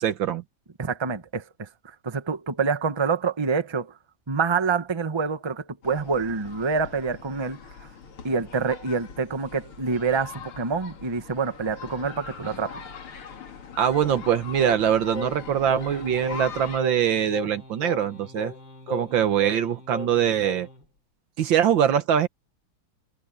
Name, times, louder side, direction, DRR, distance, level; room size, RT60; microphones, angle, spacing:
voice 1, 0.0-0.4 13.8-18.5 18.9-20.7 21.4-22.3, right 9 dB, 65° right, 1.8 m, -23 dB
voice 2, 0.8-1.7 2.0-3.9 4.3-7.6 8.2-12.8, right 5 dB, 15° right, 1.0 m, -26 dB
sound 1, 5.8-16.8, left 6 dB, 85° left, 3.0 m, -42 dB
Singing, 14.0-20.9, left 3 dB, 60° left, 6.4 m, -38 dB
omnidirectional pair, 2.3 m